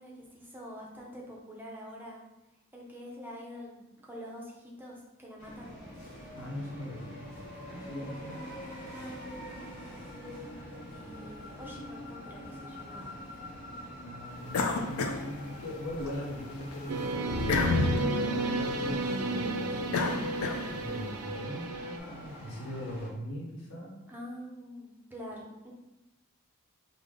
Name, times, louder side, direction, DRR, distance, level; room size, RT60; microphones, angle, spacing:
voice 1, 0.0-2.2 2.7-5.7 10.9-13.2 24.1-25.7, equal, 10° right, -3 dB, 0.5 m, -46 dB
sound 1, 5.4-23.1, equal, 50° left, 1.5 m, -45 dB
voice 2, 6.3-7.3 7.7-8.5 14.0-19.7 20.7-23.9, left 1 dB, 80° left, -3 dB, 0.9 m, -40 dB
sound 2, 14.5-16.1 16.5-21.0, left 3 dB, 65° left, 0.3 m, -31 dB
sound 3, 16.9-22.0, right 2 dB, 85° right, 0.4 m, -33 dB
3.4 x 2.1 x 3.6 m, 0.96 s
head